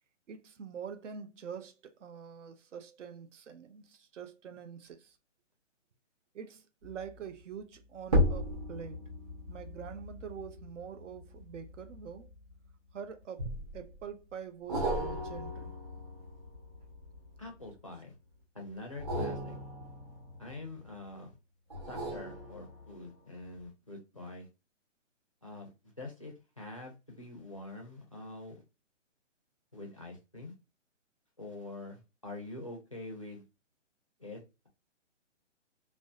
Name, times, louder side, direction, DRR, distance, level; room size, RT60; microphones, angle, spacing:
voice 1, 0.3-5.2 6.3-9.0 9.5-12.3 12.9-15.7, right 7 dB, 75° right, 0.6 m, -45 dB
sound 1, 6.8-7.2 8.0-12.7 13.4-14.0 14.7-17.7 18.9-21.0 21.7-23.1 23.6-23.7, equal, 30° right, 0.7 m, -36 dB
voice 2, 17.4-18.1 18.5-19.6 20.4-21.3 21.9-24.5 25.4-28.6 29.7-30.5 31.4-33.4 34.2-34.7, left 2 dB, 30° left, 0.4 m, -45 dB
2.5 x 2.1 x 2.3 m
hypercardioid pair, 170°, 37 cm